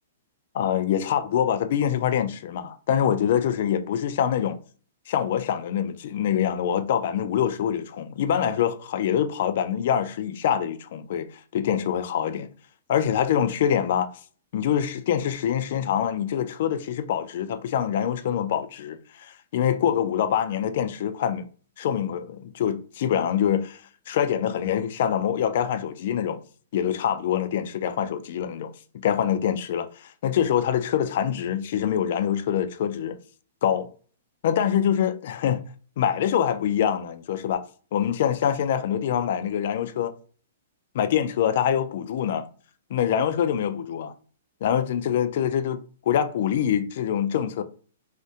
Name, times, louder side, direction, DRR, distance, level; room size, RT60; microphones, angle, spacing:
voice 1, 0.5-4.6 5.1-12.5 12.9-14.1 14.5-21.5 21.8-23.8 24.1-26.4 26.7-33.2 33.6-33.9 34.4-35.6 36.0-37.6 37.9-40.1 40.9-42.5 42.9-44.1 44.6-45.8 46.1-47.6, left 9 dB, 55° left, 0.3 m, -25 dB
2.6 x 2.1 x 3.5 m
hypercardioid pair, 145°, 0 cm